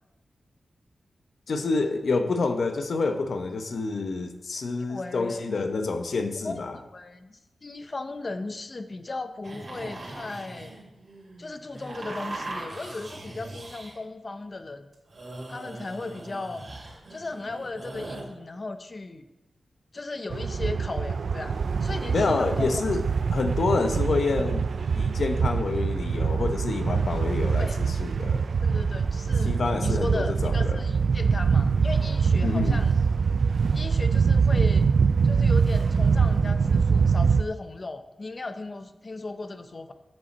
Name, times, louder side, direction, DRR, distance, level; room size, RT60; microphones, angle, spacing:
voice 1, 1.5-6.7 22.1-23.0 23.3-24.7 25.0-28.4 29.4-30.8 32.4-32.8, left 3 dB, 60° left, 6 dB, 1.0 m, -27 dB
voice 2, 4.9-5.4 6.4-10.7 11.4-14.9 15.5-16.7 17.1-19.2 19.9-22.8 27.6-27.8 28.6-32.9 33.7-34.9 35.2-39.9, left 3 dB, 35° left, 10 dB, 0.6 m, -36 dB
sound 1, 9.4-14.0 14.9-18.2, right 2 dB, 45° right, 2.5 m, -40 dB
sound 2, 20.3-37.4, right 5 dB, 60° right, 0.3 m, -24 dB
7.8 x 6.9 x 7.3 m, 1.0 s
wide cardioid pair, 160°, 0 cm